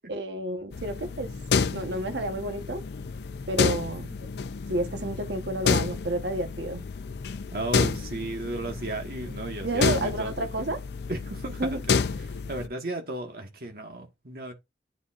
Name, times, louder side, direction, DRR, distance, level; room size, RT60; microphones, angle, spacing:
voice 1, 0.1-1.3 1.7-2.9 3.5-4.1 4.7-6.9 9.6-10.8 11.6-11.8, right 1 dB, 75° right, 1.1 m, -30 dB
sound 1, 0.7-12.7, left 5 dB, 70° left, 0.5 m, -30 dB
voice 2, 7.5-10.5 11.1-12.0 12.3-14.5, right 2 dB, 55° right, 1.5 m, -34 dB
10.0 x 4.2 x 2.4 m
head